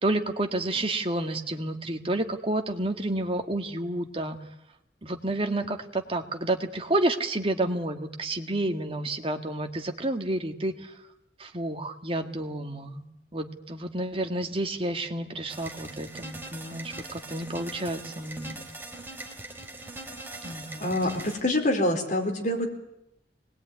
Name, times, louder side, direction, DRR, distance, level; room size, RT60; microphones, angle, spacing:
voice 1, 0.0-4.4 5.0-10.7 11.4-13.0 13.3-18.6 20.4-20.9, right 1 dB, 30° right, 5 dB, 2.0 m, -30 dB
sound 1, 15.5-21.4, right 2 dB, 10° right, 3.3 m, -41 dB
voice 2, 20.8-22.7, left 1 dB, 45° left, 3 dB, 4.3 m, -26 dB
25.0 x 20.5 x 9.6 m, 0.84 s
head